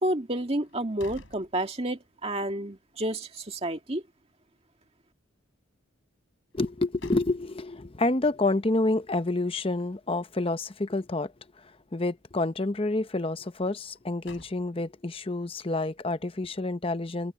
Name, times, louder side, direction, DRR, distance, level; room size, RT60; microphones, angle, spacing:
voice 1, 0.0-4.0, right 1 dB, 30° right, 2.1 m, -30 dB
sound 1, 0.6-2.2 2.6-2.7 6.5-7.8 13.8-15.1, left 2 dB, 65° left, 6.0 m, -51 dB
voice 2, 6.5-11.3 11.9-17.3, left 2 dB, 25° left, 0.7 m, -28 dB
open air
head